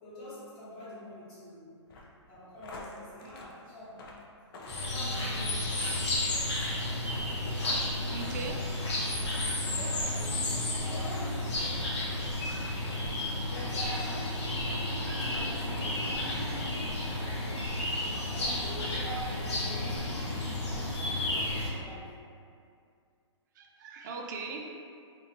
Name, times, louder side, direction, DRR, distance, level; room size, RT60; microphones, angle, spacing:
voice 1, 0.0-4.1 4.7-5.8 8.1-8.4 9.6-12.1 13.5-14.2 15.3-16.4 18.3-22.1, equal, 25° left, -12 dB, 1.4 m, -45 dB
sound 1, 1.9-10.1 10.5-10.8 11.1-11.3 11.7-11.8 12.3-12.4 12.9-13.0 13.5-13.7 13.9-14.2 14.7-14.8 15.3-16.1 16.4-16.8 17.1-17.2, left 2 dB, 50° left, 0.5 m, -49 dB
sound 2, 4.7-21.7, left 1 dB, 65° left, 1.0 m, -32 dB
voice 2, 8.1-8.8 13.6-14.0 15.0-15.4 18.0-18.2 23.6-24.8, right 4 dB, 40° right, 1 dB, 0.3 m, -41 dB
2.5 x 2.5 x 2.8 m, 2.3 s
hypercardioid pair, 140°, 15 cm